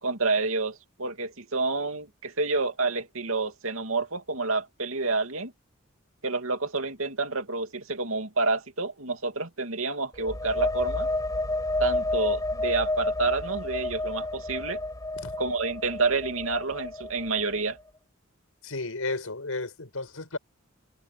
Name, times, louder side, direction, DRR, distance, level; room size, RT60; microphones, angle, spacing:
voice 1, 0.0-5.5 6.2-11.1 11.8-14.8 15.4-17.8, right 3 dB, 75° right, 2.8 m, -29 dB
sound 1, 10.1-17.7, left 2 dB, 15° left, 4.8 m, -30 dB
voice 2, 18.6-20.4, left 3 dB, 90° left, 5.0 m, -33 dB
head